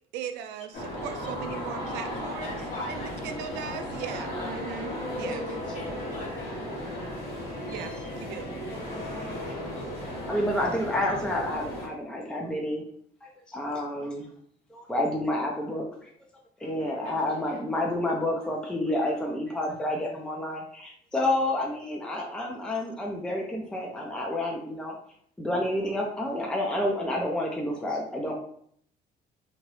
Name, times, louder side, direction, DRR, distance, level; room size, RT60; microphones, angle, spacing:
voice 1, 0.1-2.6 2.9-5.5 7.7-8.5, right 8 dB, 85° right, 8 dB, 0.4 m, -38 dB
sound 1, 0.7-11.9, left 1 dB, 75° left, 1.3 m, -35 dB
voice 2, 2.4-3.7 4.3-4.5 5.2-7.1 16.6-17.6, left 1 dB, 45° left, -2 dB, 1.5 m, -43 dB
voice 3, 10.3-12.8 13.2-14.3 14.7-15.8 16.6-24.9 25.4-28.3, left 1 dB, 5° left, 0 dB, 0.5 m, -29 dB
2.9 x 2.5 x 3.1 m, 0.63 s
cardioid pair, 110°, 17 cm